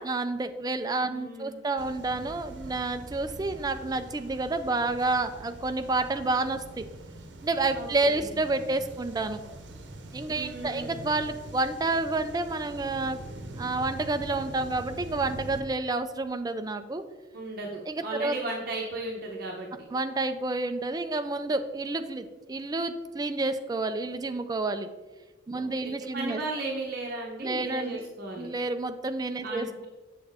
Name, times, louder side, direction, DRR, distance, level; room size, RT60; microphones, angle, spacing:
voice 1, 0.0-6.8 7.4-9.4 10.1-13.2 13.6-17.0 17.9-18.3 19.9-24.9 25.5-26.4 27.4-28.1 28.4-29.7, right 2 dB, 20° right, 9 dB, 0.4 m, -29 dB
voice 2, 1.0-1.6 7.7-8.3 10.3-11.0 17.3-19.9 25.5-28.5 29.4-29.9, right 2 dB, 55° right, -1 dB, 0.9 m, -36 dB
sound 1, 1.8-15.6, right 2 dB, 80° right, 0.8 m, -43 dB
7.3 x 6.9 x 3.5 m, 1.2 s
head